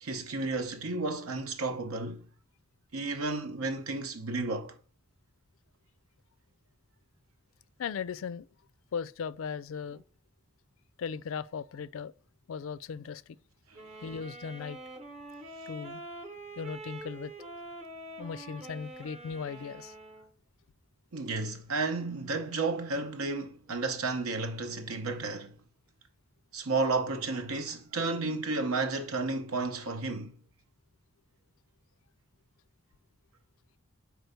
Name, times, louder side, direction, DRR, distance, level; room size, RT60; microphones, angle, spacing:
voice 1, 0.0-2.3 2.9-4.8 21.1-25.5 26.5-30.4, right 3 dB, 80° right, 0.9 m, -32 dB
voice 2, 7.8-8.5 8.9-10.0 11.0-12.1 12.5-13.2 14.0-14.8 15.7-16.0 16.6-17.3 18.2-19.9, left 6 dB, 65° left, 0.3 m, -37 dB
sound 1, 13.7-20.3, right 2 dB, 30° right, 0.9 m, -45 dB
4.8 x 4.5 x 5.1 m
head